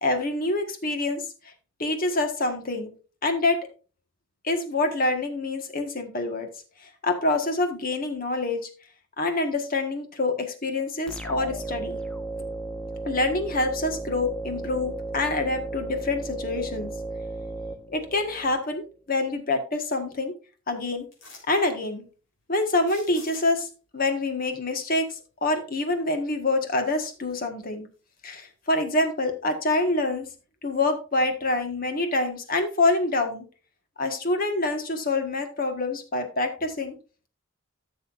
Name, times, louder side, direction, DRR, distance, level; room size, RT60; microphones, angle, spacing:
voice 1, 0.0-1.2 1.8-2.9 3.2-3.6 4.4-6.5 6.8-8.7 9.2-12.0 13.0-16.9 17.9-20.3 20.7-21.0 21.5-22.0 22.5-23.7 23.9-27.9 28.2-30.3 30.6-33.4 34.0-37.0, left 2 dB, 45° left, 6 dB, 1.5 m, -26 dB
sound 1, 11.1-18.6, right 2 dB, 5° left, 0.9 m, -35 dB
sound 2, 21.1-21.7 22.7-23.7 26.3-26.4 26.9-27.6 27.9-29.1 29.5-29.6, left 3 dB, 85° left, 3.9 m, -49 dB
14.5 x 6.8 x 2.5 m, 0.35 s
head